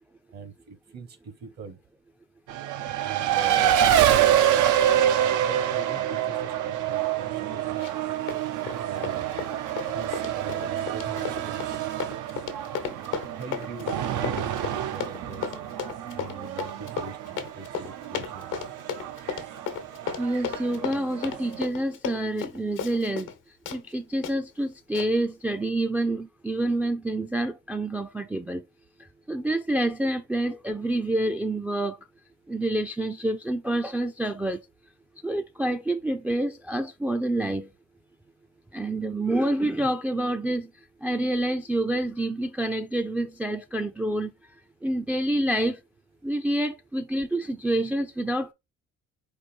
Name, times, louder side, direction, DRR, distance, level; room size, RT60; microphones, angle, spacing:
voice 1, 0.3-1.8 3.0-8.0 8.9-9.3 9.9-11.8 13.3-15.5 16.1-17.2 17.5-18.5, right 4 dB, 60° right, 1.0 m, -41 dB
Race car auto racing, 2.5-21.6, right 11 dB, 85° right, 0.6 m, -27 dB
Run, 7.8-8.0 8.3-23.4 23.7-23.8 24.2-24.3 24.9-25.1, left 7 dB, 90° left, 1.0 m, -34 dB
voice 2, 20.2-23.3 23.7-28.6 29.3-32.0 32.5-34.6 35.2-37.7 38.7-40.7 41.0-44.3 44.8-45.8 46.2-48.5, right 1 dB, 5° right, 0.3 m, -27 dB
4.7 x 2.5 x 4.2 m
cardioid pair, 90°, 30 cm